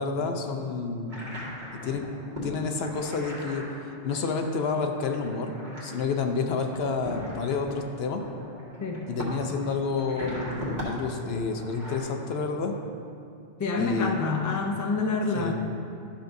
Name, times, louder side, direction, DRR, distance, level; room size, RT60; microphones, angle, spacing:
voice 1, 0.0-2.0 2.4-3.6 4.0-8.2 9.1-12.8 13.8-14.2 15.3-15.5, left 4 dB, 65° left, 4 dB, 0.8 m, -29 dB
sound 1, 1.1-12.0, equal, 40° right, 1.7 m, -40 dB
voice 2, 13.6-15.5, left 3 dB, 30° left, 2 dB, 0.3 m, -27 dB
11.5 x 6.2 x 2.6 m, 2.5 s
omnidirectional pair, 1.2 m